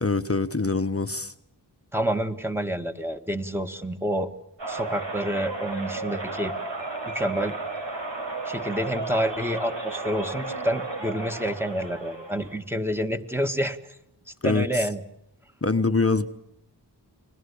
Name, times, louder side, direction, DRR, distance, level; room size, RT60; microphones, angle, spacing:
voice 1, 0.0-1.3 14.4-14.9 15.6-16.3, left 3 dB, 30° left, 9 dB, 1.2 m, -24 dB
voice 2, 1.9-4.3 4.7-6.5 7.1-7.6 8.5-13.8 14.4-15.0, equal, 5° right, 7 dB, 2.0 m, -28 dB
sound 1, 4.6-12.6, right 3 dB, 85° right, 4.8 m, -33 dB
30.0 x 21.5 x 8.6 m, 0.76 s
wide cardioid pair, 50°, 43 cm